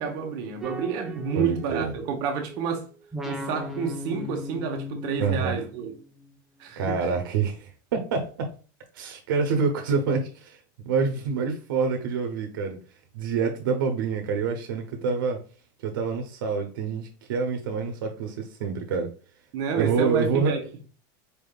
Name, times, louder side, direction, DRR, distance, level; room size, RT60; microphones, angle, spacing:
voice 1, 0.0-2.9 3.2-5.9 6.6-7.1 19.5-20.6, right 6 dB, 40° right, 0.9 m, -29 dB
sound 1, 0.6-2.7 3.1-6.3, left 1 dB, 5° right, 0.5 m, -37 dB
voice 2, 1.3-1.9 5.2-5.5 6.8-8.5 8.9-10.6 10.8-12.8 13.1-15.4 15.8-19.1 19.7-20.6, right 5 dB, 90° right, 0.8 m, -27 dB
4.4 x 3.5 x 2.3 m
supercardioid pair, 175°, 11 cm